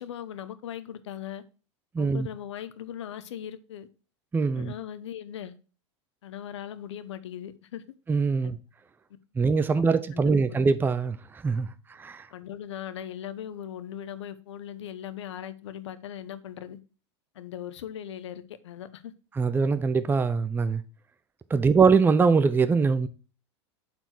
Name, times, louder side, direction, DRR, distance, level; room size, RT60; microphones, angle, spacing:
voice 1, 0.0-1.4 2.0-3.9 4.5-5.5 6.2-7.8 8.4-8.5 9.9-10.6 12.3-16.8 17.3-19.1 21.5-21.6, left 10 dB, 75° left, 0.8 m, -39 dB
voice 2, 1.9-2.3 4.3-4.7 8.1-8.6 9.4-12.3 19.4-20.8 21.5-23.1, right 5 dB, 15° right, 0.6 m, -23 dB
7.7 x 4.4 x 4.5 m
hypercardioid pair, 95°, 15 cm